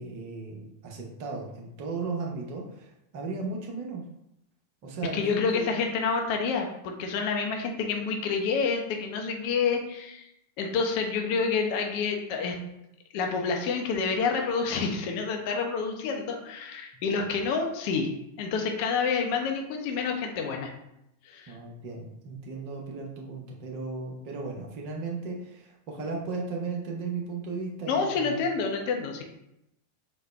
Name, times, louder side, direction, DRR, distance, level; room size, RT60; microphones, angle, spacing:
voice 1, 0.0-4.0 4.8-5.7 21.5-28.4, right 4 dB, 45° right, -1 dB, 0.8 m, -36 dB
voice 2, 5.1-10.2 10.6-12.5 13.1-18.1 18.4-20.7 21.3-21.5 27.9-29.2, left 5 dB, 45° left, 2 dB, 0.5 m, -28 dB
4.0 x 2.1 x 3.3 m, 0.82 s
figure-of-eight pair, 90°, 0 cm